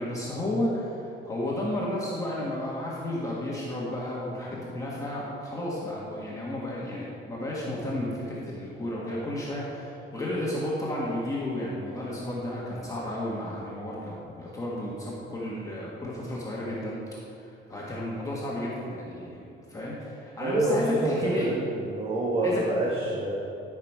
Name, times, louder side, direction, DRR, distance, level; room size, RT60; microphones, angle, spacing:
voice 1, 0.0-17.0 17.3-21.5 22.4-22.6, left 1 dB, 15° left, -6 dB, 1.5 m, -32 dB
voice 2, 20.4-23.4, right 1 dB, 25° right, -4 dB, 1.2 m, -27 dB
13.0 x 5.9 x 4.7 m, 2.8 s
cardioid pair, 150°, 20 cm